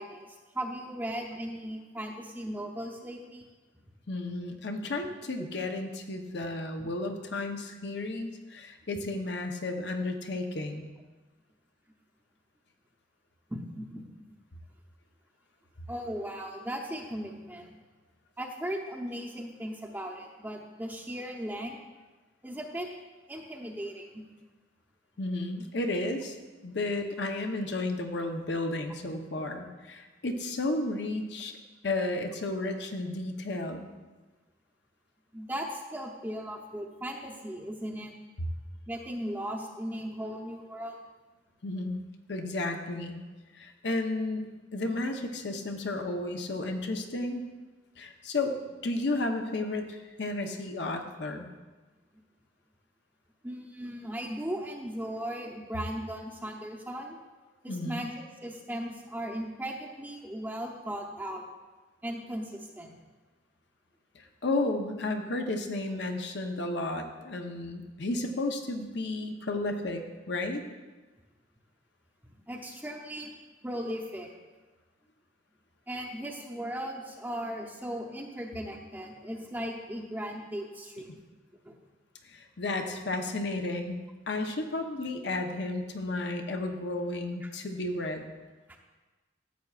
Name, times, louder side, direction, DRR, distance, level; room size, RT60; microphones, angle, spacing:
voice 1, 0.0-3.4 6.8-6.9 13.5-14.0 15.9-17.7 18.4-21.8 22.4-22.9 23.3-24.2 35.3-38.1 38.9-41.0 53.4-57.2 57.6-58.1 58.4-61.4 62.0-63.0 72.2-73.3 73.6-74.3 75.9-81.2 81.6-81.8 87.4-87.5 88.7-88.8, equal, 10° right, 0 dB, 0.7 m, -37 dB
voice 2, 4.1-10.9 25.2-26.4 26.6-31.6 31.8-33.9 41.6-42.0 42.3-43.2 43.5-47.4 48.0-48.5 48.8-51.5 57.7-58.1 64.1-70.0 70.3-70.6 82.2-84.0 84.3-88.3, left 2 dB, 65° left, 4 dB, 0.8 m, -33 dB
13.5 x 7.7 x 2.4 m, 1.3 s
head